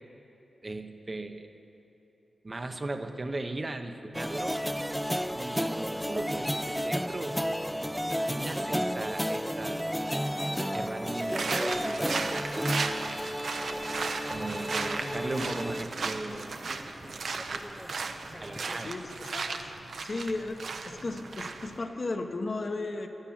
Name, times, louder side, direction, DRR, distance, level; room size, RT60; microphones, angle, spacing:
voice 1, 0.6-1.5 2.4-4.6 5.3-7.4 8.3-10.1 10.7-12.7 14.3-16.7 18.4-19.0, right 2 dB, 30° right, 6 dB, 0.7 m, -37 dB
sound 1, 4.1-18.9, equal, ahead, 0.3 m, -33 dB
sound 2, 11.2-21.8, right 4 dB, 70° right, 0.8 m, -36 dB
voice 2, 14.9-15.6 18.8-19.7 20.0-23.1, left 2 dB, 45° left, 5 dB, 0.9 m, -35 dB
13.0 x 10.5 x 8.6 m, 3.0 s
wide cardioid pair, 125°, 0 cm